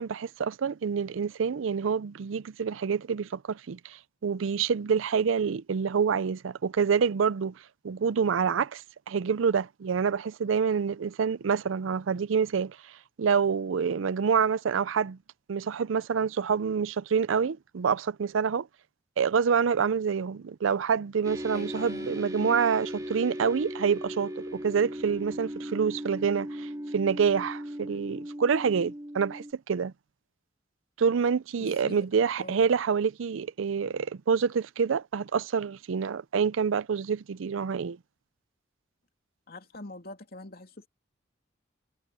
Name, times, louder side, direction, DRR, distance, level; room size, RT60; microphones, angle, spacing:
voice 1, 0.0-7.5 7.8-12.8 13.2-15.2 15.5-18.7 19.2-29.9 31.0-38.0, right 6 dB, 85° right, 0.5 m, -27 dB
sound 1, 21.2-29.5, equal, 20° right, 2.0 m, -37 dB
voice 2, 21.5-22.6 31.6-32.0 32.4-32.6 39.5-40.9, left 2 dB, 50° left, 3.0 m, -45 dB
head